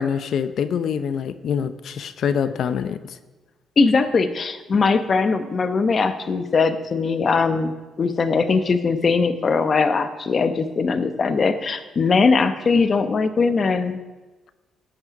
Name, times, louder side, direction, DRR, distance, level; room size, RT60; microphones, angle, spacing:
voice 1, 0.0-3.0, left 7 dB, 65° left, 12 dB, 0.7 m, -25 dB
voice 2, 3.8-7.7 8.0-14.0, left 4 dB, 40° left, 10 dB, 1.0 m, -20 dB
15.0 x 8.8 x 5.2 m, 1.2 s
cardioid pair, 90°, 0 cm